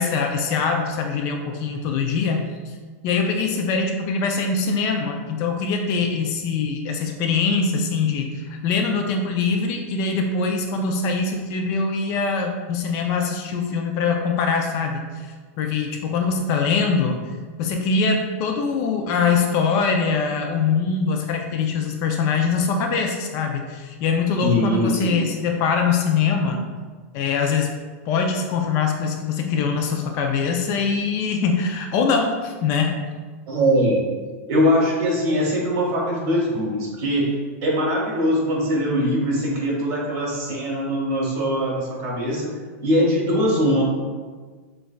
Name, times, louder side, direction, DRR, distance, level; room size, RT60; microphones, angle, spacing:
voice 1, 0.0-2.8 3.0-26.6 27.1-27.7 28.1-32.9, left 5 dB, 40° left, 3 dB, 0.4 m, -23 dB
voice 2, 24.4-25.2 33.5-34.0 34.5-42.5 42.8-43.8, equal, 40° right, -3 dB, 1.3 m, -22 dB
6.1 x 2.3 x 2.2 m, 1.4 s
supercardioid pair, 150°, 8 cm